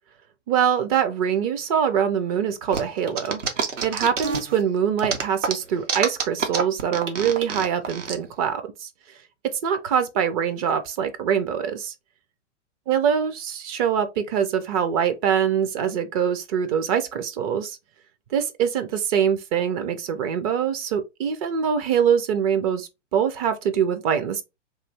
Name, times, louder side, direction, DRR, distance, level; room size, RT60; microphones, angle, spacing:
voice 1, 0.5-3.4 3.8-9.2 9.6-11.9 12.9-17.8 18.3-24.4, right 8 dB, 30° right, 0.5 m, -24 dB
sound 1, 2.7-4.6 5.0-8.1, right 6 dB, 80° right, 0.9 m, -27 dB
3.1 x 2.6 x 3.2 m
figure-of-eight pair, 105°, 36 cm